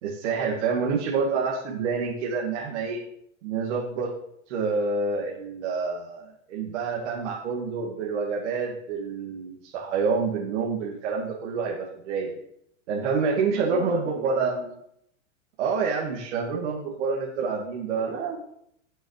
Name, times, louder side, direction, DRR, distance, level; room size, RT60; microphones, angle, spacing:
voice 1, 0.0-3.0 3.4-4.1 4.5-12.3 12.9-14.6 15.6-18.1, right 5 dB, 65° right, -2 dB, 2.3 m, -27 dB
voice 2, 13.7-14.7 17.9-18.4, right 6 dB, 35° right, 2 dB, 2.5 m, -35 dB
18.5 x 6.2 x 3.3 m, 0.74 s
hypercardioid pair, 125°, 37 cm